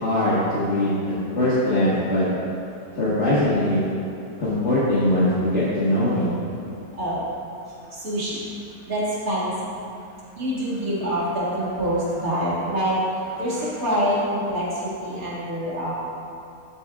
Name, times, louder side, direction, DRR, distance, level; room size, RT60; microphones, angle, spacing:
voice 1, 0.0-0.9 1.4-2.3 3.0-3.8 4.4-6.3, left 1 dB, 50° left, -11 dB, 1.8 m, -21 dB
voice 2, 7.9-8.4 8.9-9.5 10.4-15.9, equal, 70° right, -8 dB, 2.7 m, -25 dB
12.5 x 8.2 x 2.5 m, 2.5 s
omnidirectional pair, 1.6 m